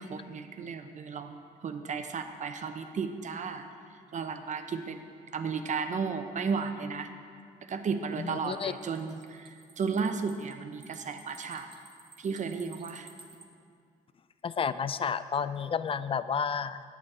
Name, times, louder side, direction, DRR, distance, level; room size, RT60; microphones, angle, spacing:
voice 1, 0.0-3.7 4.1-5.1 5.3-7.1 7.7-11.7 12.2-13.1, right 5 dB, 50° right, 7 dB, 0.7 m, -34 dB
sound 1, 7.9-13.5, right 3 dB, 30° right, 1.1 m, -54 dB
voice 2, 8.2-8.7 14.4-16.8, left 6 dB, 35° left, 14 dB, 0.4 m, -31 dB
8.8 x 8.1 x 4.8 m, 2.2 s
cardioid pair, 80°, 16 cm